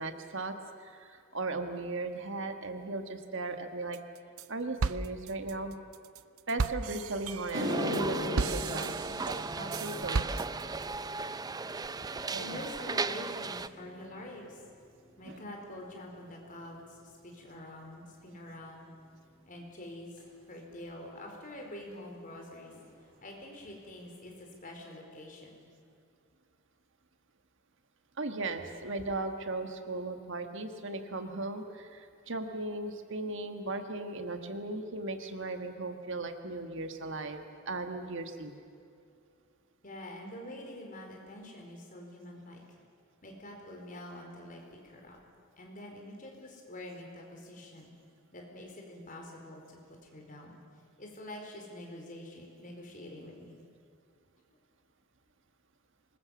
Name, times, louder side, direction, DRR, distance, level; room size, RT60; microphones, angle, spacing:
voice 1, 0.0-4.0 4.5-5.7 6.5-8.9 9.6-10.4 12.3-12.6 15.3-15.4 28.2-38.5, right 2 dB, 60° right, 6 dB, 1.6 m, -37 dB
sound 1, 3.9-4.5 4.8-10.8, right 4 dB, 80° right, 0.6 m, -35 dB
sound 2, 7.3-15.9 16.1-16.6 17.3-17.4 20.2-20.3 21.9-22.0 22.2-22.4 22.7-23.2 23.7-23.8 24.3-24.4, left 1 dB, 45° right, 6.5 m, -40 dB
sound 3, 7.5-13.7, right 4 dB, 20° right, 0.5 m, -36 dB
voice 2, 12.4-14.6 15.2-18.9 19.5-20.1 20.5-22.7 23.2-25.6 39.8-42.6 43.2-45.2 45.6-47.9 48.3-50.6 51.0-53.6, left 1 dB, 40° left, 1 dB, 4.6 m, -46 dB
25.5 x 21.0 x 7.2 m, 2.4 s
head